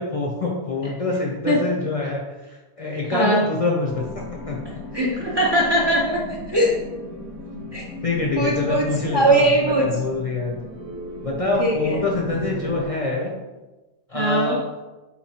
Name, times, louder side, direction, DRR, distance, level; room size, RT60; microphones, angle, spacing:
voice 1, 0.0-4.6 4.9-5.0 7.3-7.4 8.0-10.7 11.2-13.3 14.1-14.6, left 3 dB, 40° left, -2 dB, 0.6 m, -25 dB
voice 2, 3.1-3.5 4.9-6.8 7.7-7.9 8.4-9.9 11.6-12.0 14.1-14.6, right 1 dB, 30° right, -3 dB, 0.5 m, -20 dB
sound 1, 3.9-12.9, left 1 dB, 50° right, 1.0 m, -36 dB
4.2 x 3.0 x 4.2 m, 1.1 s
omnidirectional pair, 1.1 m